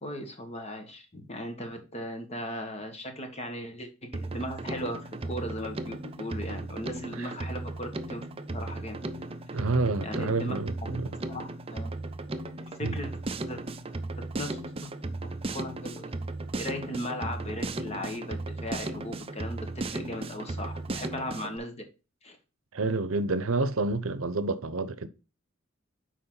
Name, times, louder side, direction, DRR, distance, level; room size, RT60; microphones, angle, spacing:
voice 1, 0.0-8.3 8.5-9.0 9.5-9.6 10.0-10.5 10.9-11.0 11.3-11.9 12.6-13.1 13.5-13.6 14.2-14.9 15.5-16.1 16.5-21.8 22.2-22.4, left 1 dB, 30° left, 1.5 m, -37 dB
Drum kit, 4.1-21.6, right 2 dB, 25° right, 0.6 m, -36 dB
voice 2, 9.5-11.1 12.8-13.0 22.7-25.1, right 3 dB, 80° right, 0.8 m, -29 dB
7.0 x 4.9 x 3.9 m
head